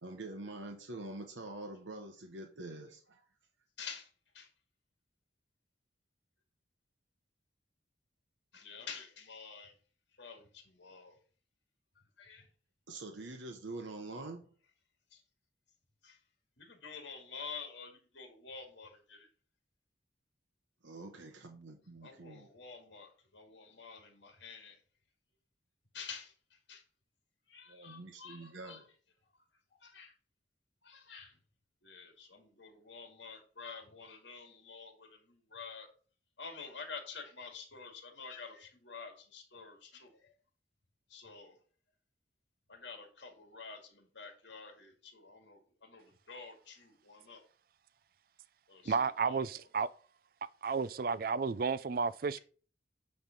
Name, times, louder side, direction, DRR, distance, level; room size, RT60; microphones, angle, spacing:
voice 1, 0.0-3.2 12.9-14.5 20.8-22.5 27.7-28.9, right 2 dB, 85° right, 1.1 m, -45 dB
voice 2, 3.8-4.5 8.5-9.8 10.2-11.2 12.2-12.5 15.1-15.2 16.0-16.2 16.6-19.3 22.0-24.8 25.9-26.8 27.5-28.8 29.4-30.1 30.8-31.4 31.8-35.9 36.4-40.4 41.1-41.6 42.7-47.4 48.7-49.7, left 5 dB, 70° left, 2.3 m, -49 dB
voice 3, 48.9-49.9 50.6-52.4, right 5 dB, 50° right, 0.4 m, -32 dB
9.5 x 3.4 x 5.9 m
head